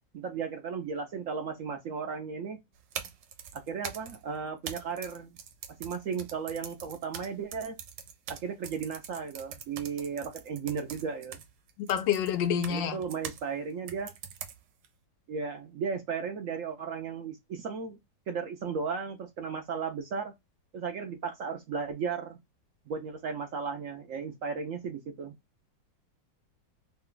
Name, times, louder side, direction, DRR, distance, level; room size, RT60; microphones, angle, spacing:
voice 1, 0.1-2.6 3.5-5.4 5.8-7.8 8.3-11.4 12.7-14.1 15.3-18.0 18.3-20.3 20.7-22.4 22.9-25.3, right 6 dB, 65° right, 0.8 m, -35 dB
sound 1, 2.7-13.4 13.9-14.9, right 8 dB, 90° right, 1.3 m, -43 dB
voice 2, 11.8-13.0, left 8 dB, 90° left, 1.3 m, -28 dB
3.3 x 2.2 x 3.7 m
omnidirectional pair, 1.9 m